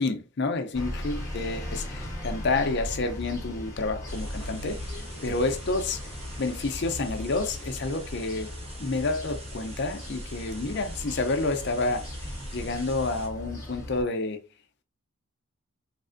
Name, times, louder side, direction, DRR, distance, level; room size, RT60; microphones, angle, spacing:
voice 1, 0.0-4.9 5.2-6.0 6.4-8.5 8.8-14.4, left 3 dB, 50° left, 0.5 m, -29 dB
sound 1, 0.7-14.0, left 1 dB, 15° left, 0.9 m, -37 dB
sound 2, 4.1-13.3, right 2 dB, 25° right, 0.9 m, -47 dB
3.3 x 2.4 x 2.5 m
head